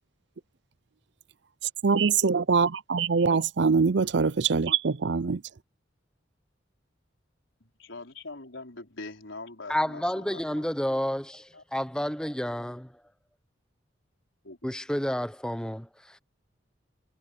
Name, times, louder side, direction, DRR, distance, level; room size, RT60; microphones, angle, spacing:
voice 1, 1.8-5.4, right 5 dB, 65° right, 0.6 m, -23 dB
voice 2, 7.8-10.4 11.5-11.6 14.4-14.6, left 3 dB, 85° left, 4.8 m, -42 dB
voice 3, 9.7-12.9 14.6-15.9, equal, 5° left, 1.0 m, -30 dB
head